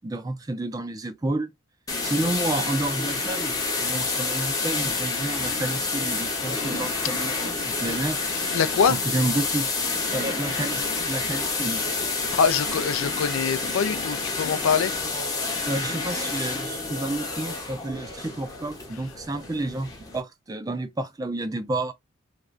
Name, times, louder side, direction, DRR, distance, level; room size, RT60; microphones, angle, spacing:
voice 1, 0.0-1.5 2.0-3.5 3.8-8.2 8.9-9.7 10.1-11.8 15.7-21.9, right 2 dB, 15° right, 0.3 m, -30 dB
sound 1, 1.9-20.2, left 3 dB, 15° left, 0.7 m, -29 dB
voice 2, 8.5-9.0 12.3-14.9, left 6 dB, 70° left, 0.4 m, -24 dB
3.1 x 2.4 x 2.4 m
head